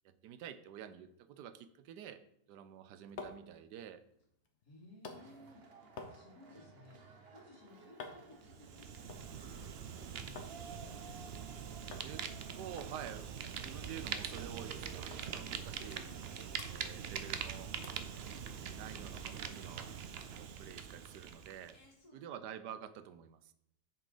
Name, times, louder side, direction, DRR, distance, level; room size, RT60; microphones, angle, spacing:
voice 1, 0.0-2.2 2.5-4.0 12.0-12.2 12.5-13.3 13.6-16.1 16.6-17.7 18.6-19.9 20.3-21.8 22.1-23.5, right 9 dB, 90° right, 11 dB, 1.3 m, -49 dB
sound 1, 2.7-10.6 10.9-11.5 11.9-12.1 12.4-12.5 12.8-14.1 14.4-14.5 15.1-15.2 15.6-16.3 16.5-17.5 17.8-18.1 18.6-18.7, left 4 dB, 50° left, 1.2 m, -53 dB
voice 2, 4.6-5.6 6.1-7.0 7.3-10.7 21.7-22.2, left 2 dB, 65° left, -4 dB, 3.1 m, -59 dB
sound 2, 5.1-16.6, right 3 dB, 40° right, 1.1 m, -57 dB
Fire, 8.4-21.8, right 7 dB, 70° right, 0.6 m, -43 dB
7.4 x 6.1 x 5.0 m, 0.76 s
omnidirectional pair, 1.7 m